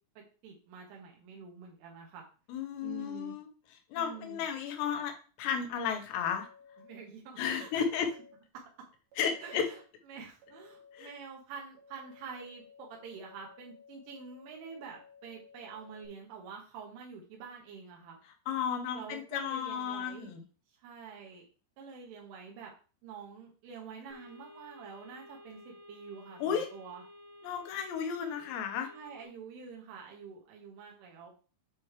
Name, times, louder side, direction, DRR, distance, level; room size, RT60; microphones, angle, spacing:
voice 1, 0.2-2.2 2.8-3.4 4.0-4.4 6.8-7.8 9.4-18.2 18.9-20.3 20.8-21.5 21.8-22.7 23.0-27.0 28.9-31.3, right 6 dB, 80° right, -1 dB, 3.6 m, -47 dB
voice 2, 2.5-3.5 3.9-6.5 7.4-8.1 9.2-9.7 10.9-11.1 18.5-20.4 26.4-26.7 27.4-28.9, left 7 dB, 75° left, 5 dB, 2.9 m, -33 dB
sound 1, 6.2-7.0 7.6-8.3 9.1-9.8 10.4-11.1 11.8-16.1, left 6 dB, 60° right, 2.6 m, -57 dB
sound 2, 24.1-29.3, left 1 dB, 55° left, 2.7 m, -53 dB
8.5 x 3.2 x 4.9 m, 0.37 s
omnidirectional pair, 5.7 m